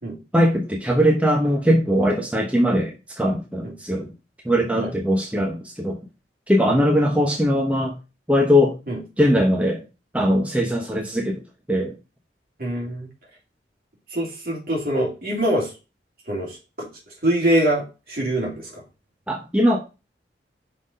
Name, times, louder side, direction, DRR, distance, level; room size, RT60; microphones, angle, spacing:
voice 1, 0.3-4.1 4.4-6.0 6.5-7.9 8.3-8.7 9.2-9.8 10.1-11.4 11.7-11.9 19.3-19.8, equal, 10° right, 1 dB, 0.9 m, -20 dB
voice 2, 12.6-13.1 14.1-15.7 16.3-16.9 17.2-18.8, right 1 dB, 55° right, -2 dB, 2.7 m, -24 dB
5.7 x 4.2 x 5.2 m, 0.30 s
head